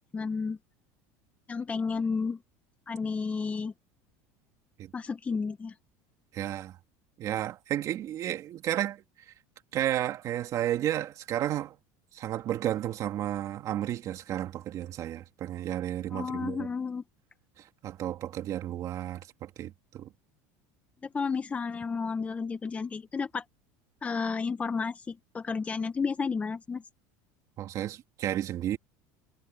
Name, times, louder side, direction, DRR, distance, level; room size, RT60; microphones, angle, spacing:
voice 1, 0.1-0.6 1.5-2.4 2.9-3.7 4.9-5.7 16.1-17.0 21.1-23.4 24.0-26.8, left 5 dB, 15° left, 1.2 m, -32 dB
voice 2, 6.3-6.8 7.2-9.0 9.7-11.8 12.1-16.7 17.6-20.1 27.6-28.8, right 12 dB, 45° right, 2.8 m, -32 dB
supercardioid pair, 135°, 8 cm